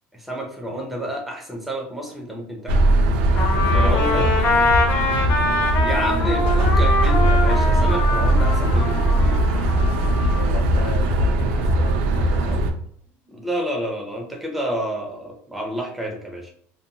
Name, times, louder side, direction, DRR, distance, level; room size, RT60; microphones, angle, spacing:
voice 1, 0.1-2.9 3.7-4.3 5.8-9.4 13.3-16.5, equal, ahead, 0 dB, 0.4 m, -30 dB
sound 1, 2.7-12.7, right 1 dB, 85° right, 0.5 m, -19 dB
Trumpet, 3.3-10.5, left 3 dB, 45° left, 1.0 m, -24 dB
voice 2, 3.7-4.7 10.3-12.8, left 5 dB, 75° left, 3 dB, 0.6 m, -34 dB
2.6 x 2.2 x 2.7 m, 0.64 s
cardioid pair, 170°, 6 cm